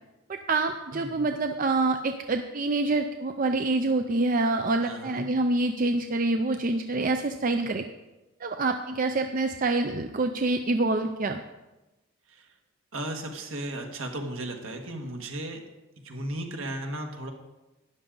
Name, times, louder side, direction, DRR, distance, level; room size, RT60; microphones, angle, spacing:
voice 1, 0.3-7.9 8.4-11.4, right 2 dB, 40° right, 6 dB, 0.4 m, -26 dB
voice 2, 0.9-1.2 4.8-5.2 12.3-12.5 12.9-15.6 16.0-17.3, right 1 dB, 70° right, 3 dB, 1.6 m, -35 dB
12.5 x 10.5 x 3.9 m, 1.1 s
head